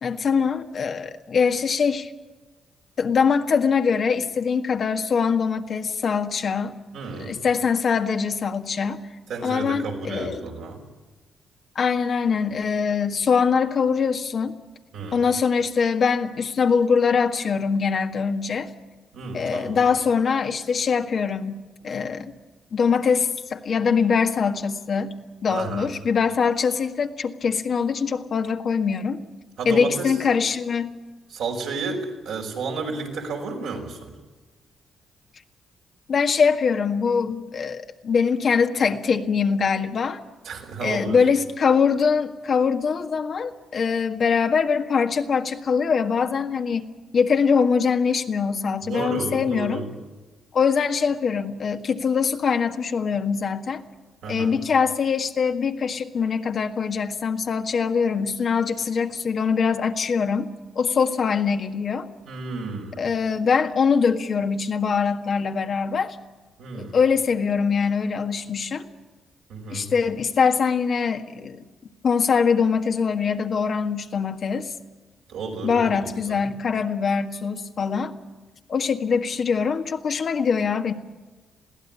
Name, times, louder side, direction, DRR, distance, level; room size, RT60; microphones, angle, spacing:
voice 1, 0.0-2.1 3.0-6.7 7.3-9.0 9.4-10.4 11.8-14.6 15.1-18.7 19.3-22.3 22.7-25.1 25.4-29.2 29.7-30.9 36.1-40.2 40.8-49.8 50.5-53.8 54.3-60.5 60.8-62.1 63.0-66.2 66.8-68.9 69.7-71.6 72.0-74.7 75.6-78.1 78.7-80.9, left 6 dB, 55° left, 5 dB, 1.7 m, -23 dB
voice 2, 6.9-7.4 9.3-10.8 14.9-15.3 19.1-19.9 25.5-25.9 29.6-30.2 31.3-34.2 40.4-41.2 48.8-49.9 54.2-54.6 62.3-63.0 66.6-67.0 69.5-69.9 75.3-76.5, right 4 dB, 80° right, 0 dB, 5.2 m, -32 dB
22.0 x 16.0 x 9.7 m, 1.2 s
cardioid pair, 65°, 0 cm